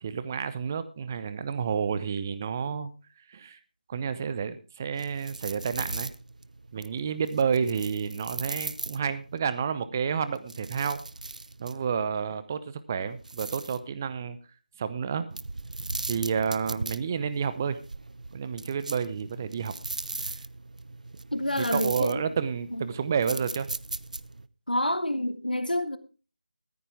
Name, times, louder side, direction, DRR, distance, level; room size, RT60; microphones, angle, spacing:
voice 1, 0.0-2.9 3.3-3.6 3.9-6.1 6.7-11.0 11.6-14.4 14.8-15.3 16.1-17.8 18.3-19.7 20.2-20.3 21.6-23.7, right 6 dB, 20° right, 0.7 m, -30 dB
sound 1, 4.9-9.4 10.2-11.9 13.0-13.9 15.3-24.5, right 2 dB, 60° right, 0.7 m, -39 dB
voice 2, 21.3-22.2 22.7-22.9 24.7-26.0, left 1 dB, 85° left, 1.5 m, -28 dB
14.5 x 13.5 x 3.5 m
figure-of-eight pair, 160°, 5 cm